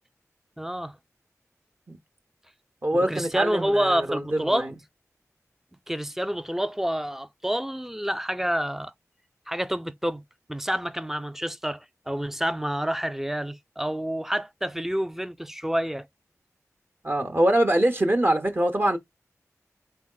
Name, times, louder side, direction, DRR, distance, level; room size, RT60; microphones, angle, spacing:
voice 1, 0.6-0.9 3.1-4.7 5.9-8.9 9.5-10.2 10.5-16.1, equal, 5° right, 0.4 m, -28 dB
voice 2, 2.8-4.7 17.0-19.0, right 1 dB, 40° right, 0.8 m, -23 dB
3.7 x 3.4 x 2.3 m
cardioid pair, 40°, 6 cm